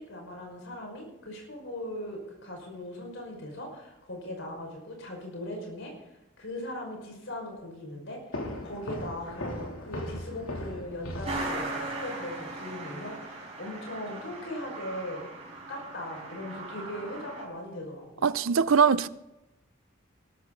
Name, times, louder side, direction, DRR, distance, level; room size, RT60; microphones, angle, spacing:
voice 1, 0.0-5.9 6.4-8.2 8.6-15.3 15.7-18.3, left 1 dB, 65° left, 5.6 m, -39 dB
sound 1, 8.3-12.0, left 1 dB, 85° left, 3.2 m, -38 dB
Truck, 11.2-17.5, right 2 dB, 35° right, 5.2 m, -38 dB
voice 2, 18.2-19.1, right 6 dB, 80° right, 0.6 m, -22 dB
17.5 x 13.5 x 4.0 m
head